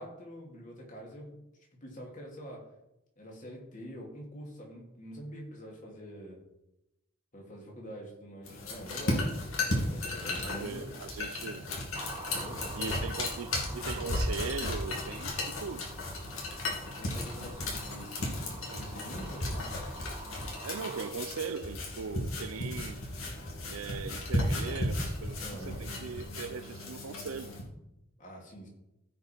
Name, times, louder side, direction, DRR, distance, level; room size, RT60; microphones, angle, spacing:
voice 1, 0.0-1.4 1.8-2.6 3.2-6.4 7.3-9.2 9.7-10.9 12.3-13.0 17.0-19.7 25.4-25.9 28.2-28.7, equal, 35° left, 2.6 m, -45 dB
sound 1, 8.4-27.6, left 1 dB, 70° left, 2.6 m, -35 dB
voice 2, 10.2-11.7 12.7-15.9 18.7-18.8 20.6-23.0 23.7-27.5, right 5 dB, 75° right, 0.5 m, -40 dB
sound 2, 11.9-21.1, right 3 dB, 20° right, 0.8 m, -48 dB
15.5 x 5.4 x 4.5 m
head